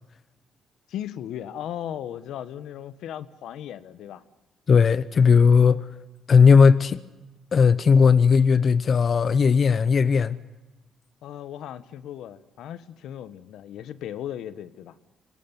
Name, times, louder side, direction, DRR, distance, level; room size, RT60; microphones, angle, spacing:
voice 1, 0.9-4.2 11.2-14.9, left 10 dB, 80° left, 1.3 m, -36 dB
voice 2, 4.7-5.8 6.3-7.0 7.5-10.4, left 5 dB, 45° left, 0.9 m, -17 dB
26.0 x 18.5 x 9.8 m
cardioid pair, 90°, 0 cm